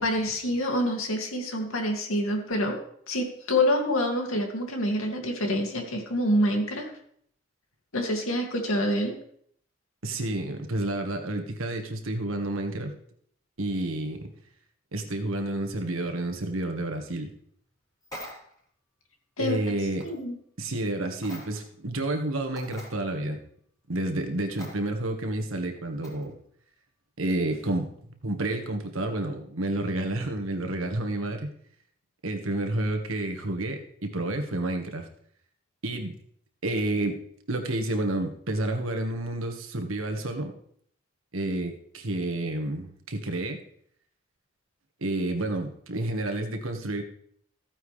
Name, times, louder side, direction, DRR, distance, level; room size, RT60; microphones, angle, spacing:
voice 1, 0.0-2.8 3.1-6.9 7.9-9.2 19.4-19.6 20.0-20.4, left 1 dB, 80° left, 2 dB, 2.3 m, -26 dB
voice 2, 10.0-12.9 13.6-14.3 14.9-17.3 19.4-20.1 20.6-23.4 23.9-26.3 27.2-27.9 28.2-31.5 32.2-35.1 35.8-36.1 36.6-37.2 37.5-40.5 41.3-43.6 45.0-47.0, right 1 dB, 80° right, 5 dB, 1.6 m, -30 dB
sound 1, 18.0-18.6 20.0-20.2 21.2-21.7 22.1-22.2 22.6-22.9 24.6-24.7 26.0-26.3, equal, 20° left, 3.7 m, -43 dB
15.0 x 9.2 x 3.3 m, 0.64 s
head